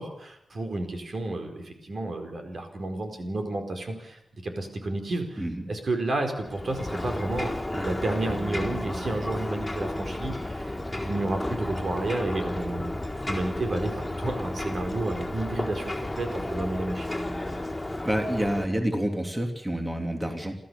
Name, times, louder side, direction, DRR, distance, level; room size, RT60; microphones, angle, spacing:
voice 1, 0.0-13.0 13.2-17.1, right 2 dB, 65° right, 4 dB, 4.6 m, -31 dB
Ocean, 6.4-18.7, left 1 dB, 15° left, 4.2 m, -32 dB
voice 2, 18.0-20.5, right 1 dB, 15° right, 3 dB, 3.1 m, -28 dB
28.5 x 14.0 x 7.1 m, 0.78 s
cardioid pair, 65°, 0 cm